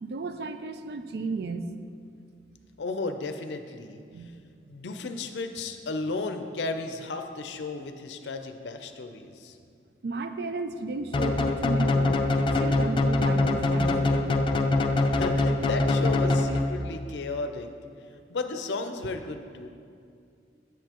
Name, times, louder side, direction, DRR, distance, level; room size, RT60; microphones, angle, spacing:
voice 1, 0.0-1.7 4.1-4.3 10.0-12.2 12.5-14.3, right 3 dB, 65° right, 9 dB, 0.4 m, -34 dB
voice 2, 2.8-4.3 4.7-9.6 15.1-17.7 18.3-19.7, left 3 dB, 85° left, 7 dB, 0.5 m, -34 dB
sound 1, 11.1-16.9, left 2 dB, 30° left, 0.3 m, -24 dB
8.0 x 7.1 x 2.9 m, 2.3 s
head